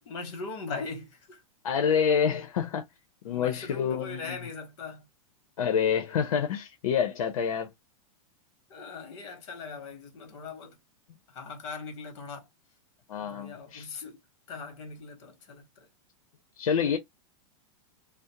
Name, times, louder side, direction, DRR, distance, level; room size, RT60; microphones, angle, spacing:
voice 1, 0.0-1.4 3.3-5.1 8.7-10.8 11.3-12.5 13.2-14.2 14.5-15.9, left 4 dB, 55° left, 1.2 m, -40 dB
voice 2, 1.6-2.8 3.2-4.3 5.6-7.7 13.1-13.9 16.6-17.0, left 7 dB, 85° left, 0.7 m, -27 dB
2.4 x 2.0 x 2.8 m
supercardioid pair, 170°, 18 cm